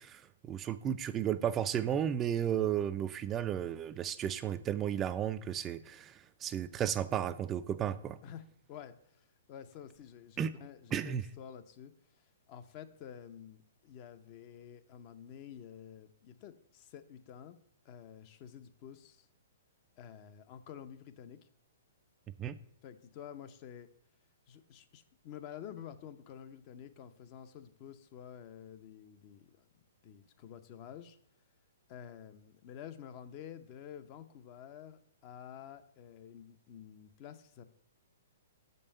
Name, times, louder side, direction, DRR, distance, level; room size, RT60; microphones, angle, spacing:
voice 1, 0.0-8.2 10.4-10.5 10.9-11.2 22.4-22.6, right 9 dB, 20° right, 11 dB, 0.4 m, -33 dB
voice 2, 8.2-17.6 17.8-19.3 20.0-21.4 22.8-23.9 24.5-29.7 30.0-31.2 31.9-37.6, left 9 dB, 40° left, 10 dB, 0.6 m, -50 dB
6.9 x 5.4 x 5.4 m, 0.71 s
hypercardioid pair, 125°, 0 cm